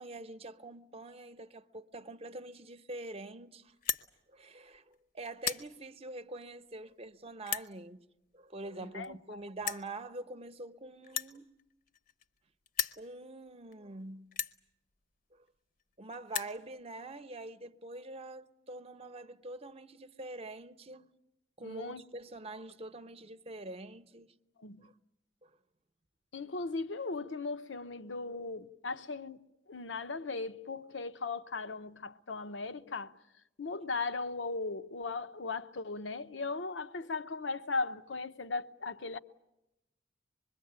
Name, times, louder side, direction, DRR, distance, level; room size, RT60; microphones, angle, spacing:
voice 1, 0.0-3.7 4.3-8.0 8.3-11.5 13.0-14.3 16.0-21.1 21.6-24.3 24.8-24.9 25.4-25.5, right 2 dB, 35° right, 0.9 m, -45 dB
sound 1, 3.7-4.1 4.7-4.9 5.3-5.7 6.4-6.5 7.4-7.7 8.7-8.8 9.0-9.1 9.6-9.9 11.0-12.4 12.7-13.0 13.7-13.8 14.3-14.6 15.5-15.6 15.8-15.9 16.1-16.6, left 8 dB, 50° left, 0.8 m, -35 dB
voice 2, 8.8-9.4 21.6-22.0 24.6-24.9 26.3-29.4 29.7-33.1 33.6-39.2, left 3 dB, 80° left, 0.9 m, -38 dB
25.5 x 22.0 x 8.8 m
head